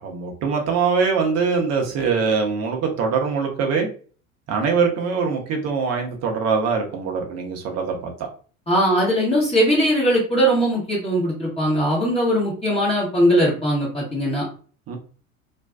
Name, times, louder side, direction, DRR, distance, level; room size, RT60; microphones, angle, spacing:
voice 1, 0.0-3.9 4.5-8.1 14.9-15.0, right 5 dB, 35° right, 2 dB, 0.7 m, -23 dB
voice 2, 8.7-14.5, equal, 15° left, -5 dB, 0.9 m, -20 dB
2.5 x 2.2 x 2.2 m, 0.41 s
figure-of-eight pair, 75°, 42 cm